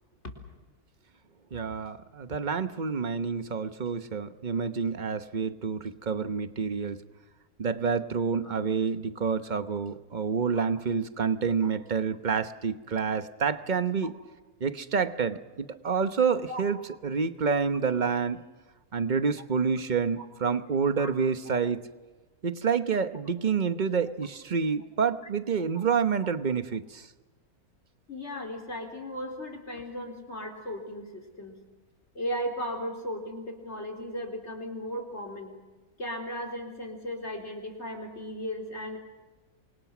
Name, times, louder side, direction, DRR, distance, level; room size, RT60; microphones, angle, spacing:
voice 1, 1.5-7.0 7.6-14.1 14.6-16.8 17.0-18.4 18.9-21.8 22.4-27.1, right 6 dB, 35° right, 10 dB, 1.0 m, -28 dB
voice 2, 28.1-31.6 32.1-35.6 36.0-39.0, equal, 45° left, 2 dB, 4.4 m, -36 dB
29.0 x 24.0 x 6.1 m, 1.2 s
omnidirectional pair, 1.6 m